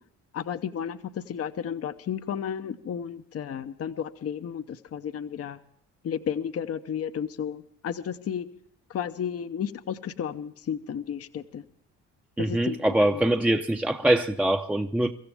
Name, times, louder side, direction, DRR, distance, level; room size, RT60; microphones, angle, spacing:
voice 1, 0.3-5.6 6.0-8.5 8.9-11.6 12.4-13.2, left 8 dB, 50° left, 0.8 m, -33 dB
voice 2, 12.4-15.1, right 1 dB, 5° right, 0.7 m, -23 dB
24.0 x 15.0 x 3.5 m
cardioid pair, 90°, 30 cm